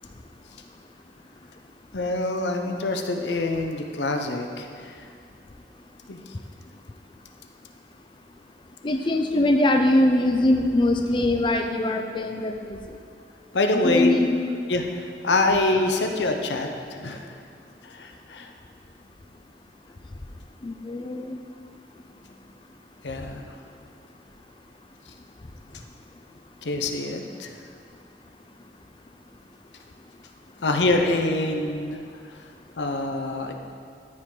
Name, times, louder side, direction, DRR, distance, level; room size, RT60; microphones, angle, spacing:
voice 1, 1.9-5.1 6.1-6.2 13.5-14.1 14.7-17.3 17.8-18.5 23.0-23.5 26.6-27.5 30.6-32.0 32.3-32.4 32.8-33.5, left 2 dB, 80° left, 4 dB, 0.7 m, -25 dB
voice 2, 8.8-13.0 13.7-14.3 20.6-21.4, left 1 dB, 30° left, 4 dB, 0.4 m, -22 dB
13.0 x 5.1 x 3.8 m, 2.3 s
head